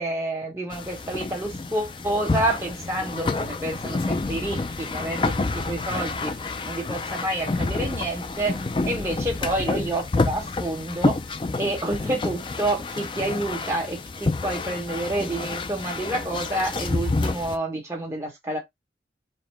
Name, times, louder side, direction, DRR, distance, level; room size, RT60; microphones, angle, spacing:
voice 1, 0.0-18.6, right 1 dB, 15° right, 1.2 m, -29 dB
sound 1, 0.7-17.6, left 3 dB, 30° left, 0.3 m, -29 dB
4.8 x 2.1 x 3.4 m
head